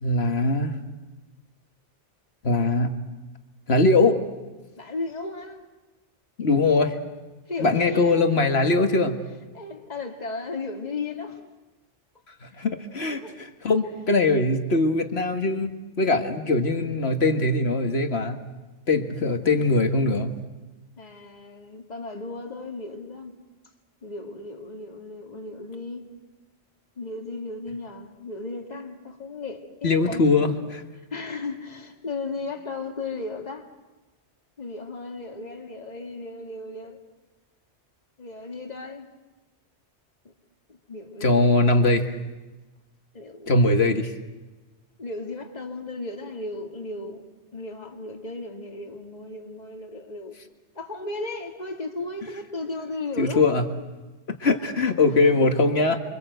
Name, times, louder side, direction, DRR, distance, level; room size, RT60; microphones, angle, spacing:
voice 1, 0.0-0.7 2.4-2.9 3.7-4.2 6.4-6.9 7.6-9.2 12.6-13.2 13.6-18.4 18.9-20.3 29.8-30.8 41.2-42.2 43.5-44.1 53.2-53.6 54.4-56.0, left 2 dB, 60° left, 2.0 m, -21 dB
voice 2, 4.8-5.7 7.5-8.2 9.5-11.5 12.5-12.6 13.1-13.5 21.0-23.4 24.0-26.1 27.0-30.2 31.1-33.7 34.6-37.0 38.2-39.1 40.2-40.3 40.7-41.4 43.1-43.8 45.0-47.2 47.5-50.4 50.8-53.5 55.0-55.5, left 3 dB, 35° left, 2.1 m, -35 dB
29.0 x 24.5 x 8.0 m
omnidirectional pair, 1.2 m